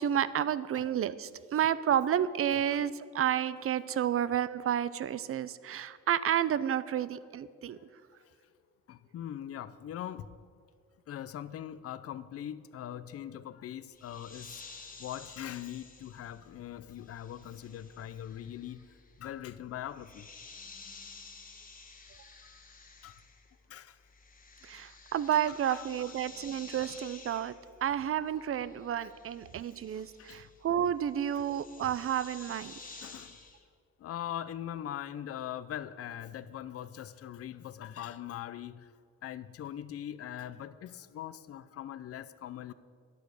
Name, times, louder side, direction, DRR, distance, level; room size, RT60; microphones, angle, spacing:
voice 1, 0.0-7.8 24.6-27.5 27.8-32.8, right 10 dB, 50° right, 16 dB, 0.5 m, -31 dB
voice 2, 8.9-10.4 11.1-14.6 15.0-18.9 19.2-20.3 22.5-22.6 23.0-23.2 23.7-24.0 24.7-24.8 25.7-25.9 26.8-26.9 29.9-30.4 31.4-31.5 33.0-33.4 34.0-38.9 39.2-42.7, left 10 dB, 50° left, 15 dB, 0.5 m, -41 dB
sound 1, 13.9-23.7 23.9-33.6, left 4 dB, 30° left, 1.4 m, -52 dB
10.5 x 8.5 x 6.3 m, 2.1 s
cardioid pair, 90°, 30 cm